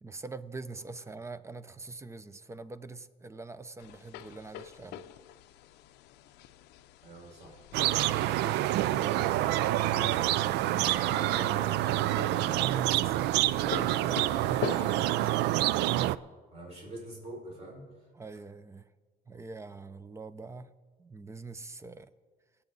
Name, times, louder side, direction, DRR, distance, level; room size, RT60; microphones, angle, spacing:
voice 1, 0.0-5.0 12.4-13.3 18.1-18.9 19.3-20.7 21.0-22.1, right 3 dB, 15° right, 14 dB, 0.6 m, -44 dB
sound 1, 3.8-15.0, left 11 dB, 85° left, 0.5 m, -45 dB
voice 2, 7.0-12.9 16.5-17.9 18.3-18.4, right 1 dB, 40° right, -2 dB, 5.2 m, -46 dB
sound 2, 7.7-16.2, right 14 dB, 85° right, 0.4 m, -27 dB
24.0 x 8.4 x 4.0 m, 1.5 s
cardioid pair, 110°, 17 cm